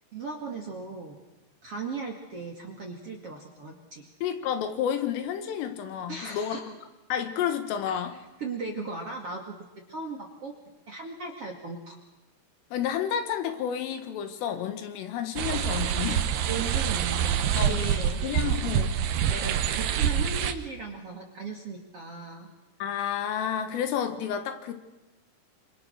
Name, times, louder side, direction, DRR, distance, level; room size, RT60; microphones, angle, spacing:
voice 1, 0.1-1.2 1.6-4.1 6.1-6.6 7.9-8.1 8.4-9.5 9.9-10.5 10.9-12.0 16.5-18.6 19.3-22.5, right 3 dB, 45° right, 2 dB, 2.1 m, -37 dB
voice 2, 4.2-6.6 7.1-8.2 12.7-16.2 17.6-17.8 18.2-18.9 22.8-24.7, left 9 dB, 80° left, 8 dB, 4.2 m, -30 dB
sound 1, 15.4-20.5, right 9 dB, 80° right, 1.9 m, -26 dB
26.5 x 26.5 x 6.4 m, 1.1 s
omnidirectional pair, 5.7 m